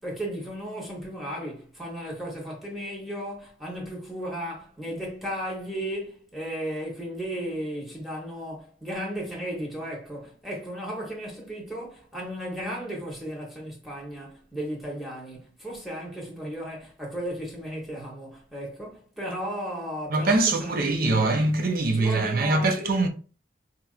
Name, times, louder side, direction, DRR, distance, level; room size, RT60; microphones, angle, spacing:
voice 1, 0.0-21.5 21.9-23.0, equal, ahead, 1.1 m, -35 dB
voice 2, 20.1-23.1, right 2 dB, 50° right, 0.5 m, -23 dB
4.2 x 2.5 x 2.4 m
head